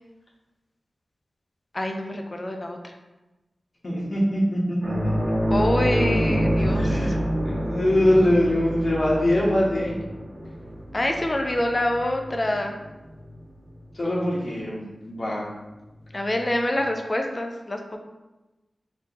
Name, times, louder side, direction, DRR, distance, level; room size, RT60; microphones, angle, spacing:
voice 1, 1.7-2.8 5.5-6.9 10.9-12.8 16.1-18.0, left 1 dB, 30° left, 3 dB, 0.4 m, -26 dB
voice 2, 3.8-5.3 6.7-7.2 7.4-10.0 13.9-15.5, left 1 dB, 55° left, -6 dB, 1.1 m, -23 dB
sound 1, 4.8-13.8 14.1-14.3 16.3-16.4, equal, 40° right, 1.4 m, -27 dB
3.3 x 3.1 x 3.0 m, 1.1 s
wide cardioid pair, 90°, 0 cm